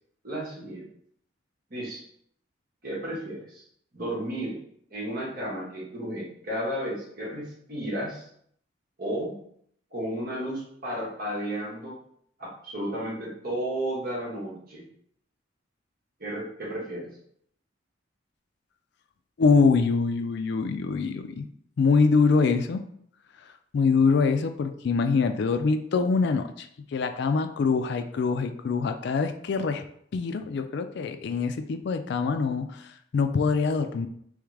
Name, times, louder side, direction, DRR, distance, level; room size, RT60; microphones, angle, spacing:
voice 1, 0.2-0.9 1.7-2.0 2.8-3.6 3.9-4.6 4.9-8.3 9.0-9.4 9.9-12.0 12.4-14.9 16.2-17.1, right 1 dB, 50° right, -4 dB, 1.4 m, -33 dB
voice 2, 19.4-21.5 21.8-22.8 23.7-26.7 26.9-29.8 30.1-32.7 33.1-34.1, left 4 dB, 60° left, 8 dB, 0.4 m, -24 dB
3.6 x 3.4 x 3.2 m, 0.66 s
head